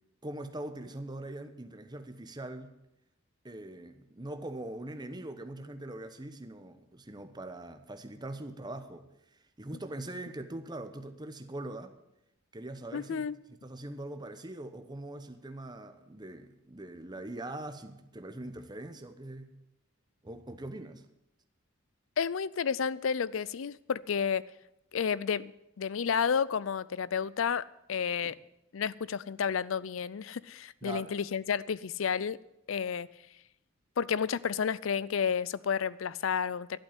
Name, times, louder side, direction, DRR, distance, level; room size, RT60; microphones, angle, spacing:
voice 1, 0.2-2.7 3.4-9.1 9.6-12.0 12.5-19.5 20.2-21.0 28.2-28.3 30.8-31.1, right 1 dB, 20° right, 1.0 m, -42 dB
voice 2, 12.9-13.4 22.2-24.4 24.9-28.4 28.7-32.4 32.7-33.1 34.0-36.8, left 7 dB, 70° left, 0.5 m, -31 dB
11.5 x 8.3 x 9.1 m
head